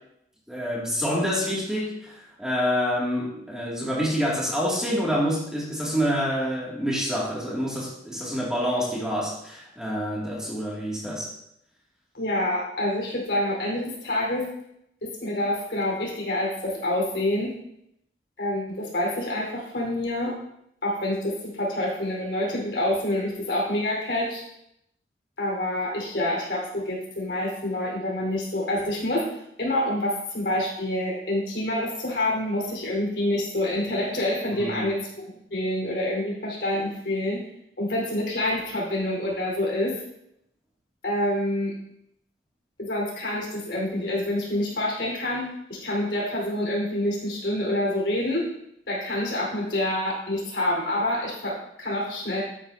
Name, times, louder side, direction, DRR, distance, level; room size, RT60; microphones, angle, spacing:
voice 1, 0.5-2.1 2.4-11.3 34.6-34.9, equal, 5° right, -5 dB, 2.5 m, -27 dB
voice 2, 12.1-14.5 15.0-17.5 18.4-20.3 20.8-24.4 25.4-29.2 29.6-37.4 37.8-39.9 41.0-41.7 42.8-48.5 48.9-52.4, left 1 dB, 65° left, -4 dB, 4.5 m, -27 dB
13.0 x 9.5 x 2.8 m, 0.77 s
head